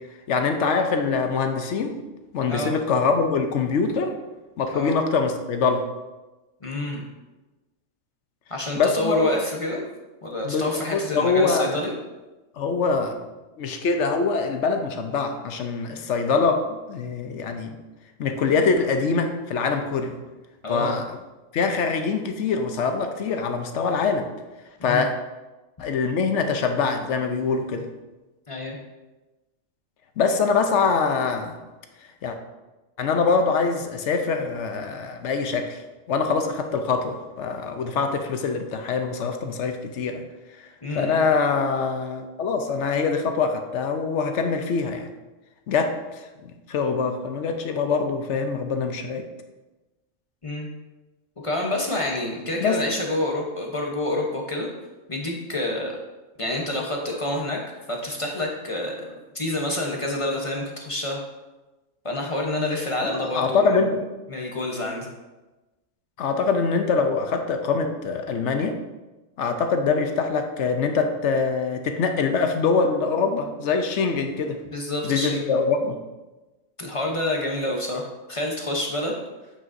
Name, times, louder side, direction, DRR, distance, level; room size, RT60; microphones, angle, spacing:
voice 1, 0.3-2.0 2.3-4.2 4.6-5.8 8.7-9.3 10.4-11.8 12.6-13.2 13.6-17.8 18.2-20.1 20.7-21.0 21.5-24.3 24.8-25.1 25.8-27.9 30.2-31.6 32.2-32.4 33.0-35.8 36.1-40.2 40.9-45.1 45.7-46.3 46.7-49.3 52.6-52.8 63.0-64.1 66.2-68.8 69.4-74.6 75.0-76.0, left 4 dB, 65° left, 6 dB, 0.9 m, -24 dB
voice 2, 6.6-7.0 8.5-9.8 10.2-11.9 20.6-21.0 24.8-25.1 28.5-28.8 40.8-41.2 50.4-50.7 51.4-54.7 55.1-56.0 56.4-57.6 57.9-61.2 62.0-63.8 64.3-65.1 74.7-75.5 76.8-78.0 78.3-79.1, left 1 dB, 30° left, 0 dB, 0.8 m, -28 dB
8.2 x 6.1 x 2.6 m, 1.1 s
omnidirectional pair, 1.4 m